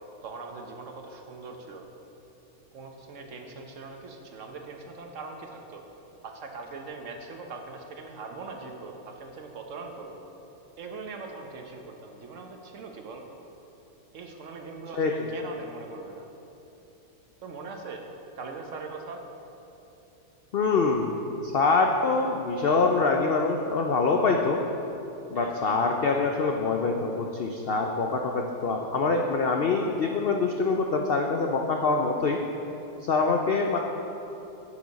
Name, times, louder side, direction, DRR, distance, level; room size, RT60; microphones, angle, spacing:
voice 1, 0.2-1.9 2.7-5.8 6.2-10.2 10.8-13.2 14.1-16.3 17.4-18.0 18.4-19.2 25.3-25.7, right 4 dB, 60° right, 3 dB, 1.1 m, -41 dB
voice 2, 15.0-15.3 20.5-21.1 21.4-24.6 25.3-32.4 33.1-33.8, left 4 dB, 70° left, 2 dB, 0.5 m, -25 dB
11.0 x 7.1 x 4.1 m, 3.0 s
omnidirectional pair, 1.6 m